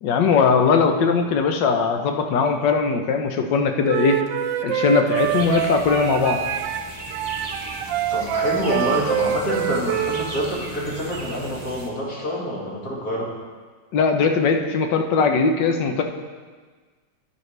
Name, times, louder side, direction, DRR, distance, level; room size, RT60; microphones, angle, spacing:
voice 1, 0.0-4.2 4.6-6.4 13.9-16.0, left 5 dB, 75° left, 5 dB, 1.4 m, -20 dB
Wind instrument woodwind instrument, 3.9-6.8 7.1-10.3, right 9 dB, 80° right, 1.3 m, -25 dB
sound 1, 5.1-11.9, right 2 dB, 35° right, 0.6 m, -37 dB
voice 2, 8.1-13.3, equal, 55° left, -5 dB, 2.6 m, -26 dB
10.5 x 9.7 x 3.2 m, 1.4 s
omnidirectional pair, 2.0 m